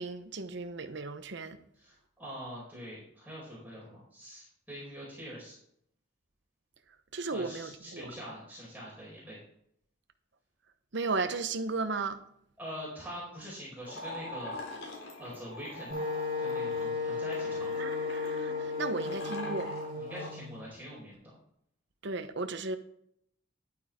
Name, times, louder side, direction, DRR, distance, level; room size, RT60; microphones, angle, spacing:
voice 1, 0.0-1.6 7.1-8.1 10.9-12.2 17.8-19.7 22.0-22.8, right 3 dB, 65° right, 1.0 m, -35 dB
voice 2, 1.7-5.6 7.3-9.4 12.6-14.6 15.2-16.0 16.4-17.7 19.9-21.4, equal, 10° right, 4.8 m, -44 dB
sound 1, 13.8-20.3, left 2 dB, 85° left, 3.7 m, -43 dB
Wind instrument woodwind instrument, 15.9-20.6, left 4 dB, 45° right, 3.4 m, -34 dB
11.5 x 9.2 x 3.7 m
head